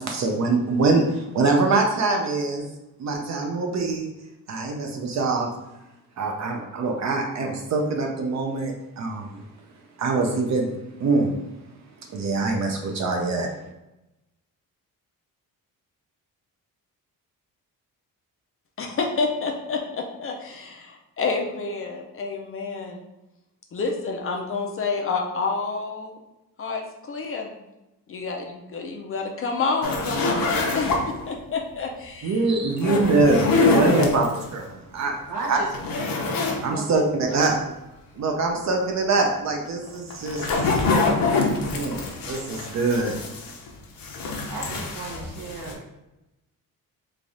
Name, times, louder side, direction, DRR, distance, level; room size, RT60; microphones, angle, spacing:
voice 1, 0.0-2.6 3.0-4.1 4.5-5.5 6.2-9.5 10.0-10.7 11.0-11.3 12.1-13.5 32.2-35.2 35.5-35.6 36.6-37.6 38.2-40.8 41.7-43.1, right 3 dB, 50° right, 1 dB, 0.5 m, -24 dB
voice 2, 18.8-23.0 23.7-26.2 26.6-27.5 28.1-32.4, left 4 dB, 40° left, 1 dB, 0.4 m, -29 dB
sound 1, 29.8-31.3 32.7-34.4 35.0-35.1 35.5-36.6 37.0-37.1 39.9-43.7 44.0-45.7, left 3 dB, 70° left, 0.7 m, -25 dB
voice 3, 35.3-35.7 36.7-37.4 44.5-45.8, right 3 dB, 65° right, -1 dB, 1.0 m, -35 dB
3.3 x 2.3 x 3.9 m, 0.97 s
wide cardioid pair, 160°, 36 cm